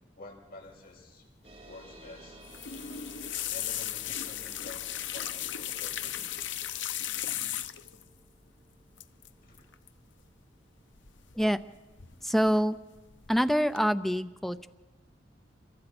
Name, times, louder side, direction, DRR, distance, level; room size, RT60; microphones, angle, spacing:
voice 1, 0.2-1.2 1.6-2.4 3.5-6.5 9.4-9.7, left 2 dB, 50° left, 0 dB, 7.1 m, -49 dB
sound 1, 1.4-12.4, right 1 dB, 30° right, 4.2 m, -55 dB
sound 2, 2.4-8.0 9.0-9.3 9.5-9.9 11.1-11.6 12.0-12.5 13.0-13.4 13.8-13.9, left 11 dB, 70° left, 0.8 m, -36 dB
voice 2, 12.2-12.8 13.3-14.7, equal, ahead, 10 dB, 0.7 m, -26 dB
27.5 x 23.5 x 6.2 m, 1.2 s
head